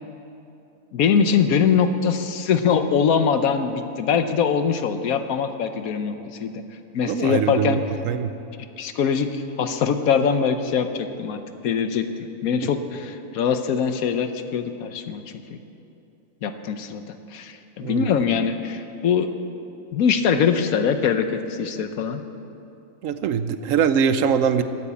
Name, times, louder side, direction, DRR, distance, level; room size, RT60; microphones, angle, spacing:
voice 1, 0.9-6.6 6.9-7.8 8.8-15.2 15.5-15.6 16.4-17.0 17.3-19.3 19.9-22.2, left 6 dB, 75° left, 9 dB, 1.2 m, -22 dB
voice 2, 7.0-7.8 8.0-8.3 12.6-12.7 17.8-18.1 23.0-24.6, right 7 dB, 65° right, 11 dB, 1.0 m, -22 dB
14.0 x 9.1 x 8.4 m, 2.7 s
omnidirectional pair, 1.5 m